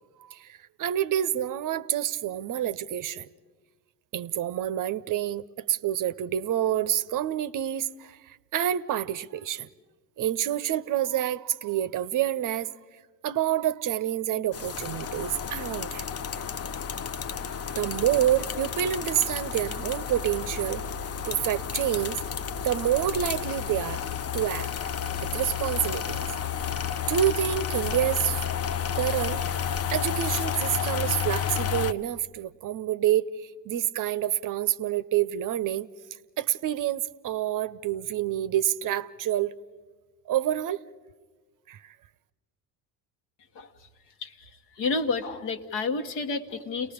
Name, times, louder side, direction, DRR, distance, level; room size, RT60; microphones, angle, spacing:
voice 1, 0.3-3.3 4.1-9.7 10.2-12.7 13.2-16.0 17.7-20.8 21.3-22.2 22.6-24.0 24.3-24.7 25.2-26.3 27.1-28.5 28.9-29.4 29.9-35.9 36.4-39.5 40.3-40.8 41.7-41.9, right 11 dB, 45° right, 0.7 m, -28 dB
sound 1, 14.5-31.9, left 8 dB, 30° left, 0.7 m, -31 dB
voice 2, 44.2-44.5 44.8-46.9, left 4 dB, 60° left, 1.6 m, -30 dB
30.0 x 19.0 x 5.1 m
hypercardioid pair, 55°, 47 cm